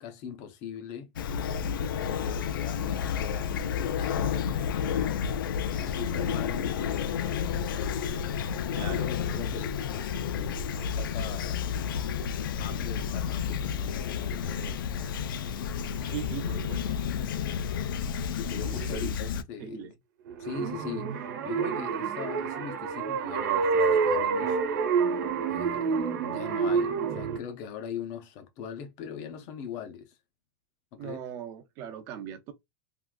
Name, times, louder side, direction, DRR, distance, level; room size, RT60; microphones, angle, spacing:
voice 1, 0.0-1.1 2.1-4.9 5.7-8.3 8.7-11.6 11.9-15.1 18.4-19.9 20.4-24.6 25.5-30.2 30.9-31.2, left 8 dB, 30° left, 0.5 m, -41 dB
Fowl / Chirp tweet, 1.2-19.4, left 7 dB, 80° left, 0.4 m, -31 dB
voice 2, 8.8-9.1 16.0-17.0 18.6-19.1 19.6-19.9 31.0-32.5, right 9 dB, 25° right, 0.4 m, -39 dB
sound 1, 20.3-27.4, right 5 dB, 60° right, 1.0 m, -28 dB
3.6 x 2.4 x 2.2 m
supercardioid pair, 180°, 11 cm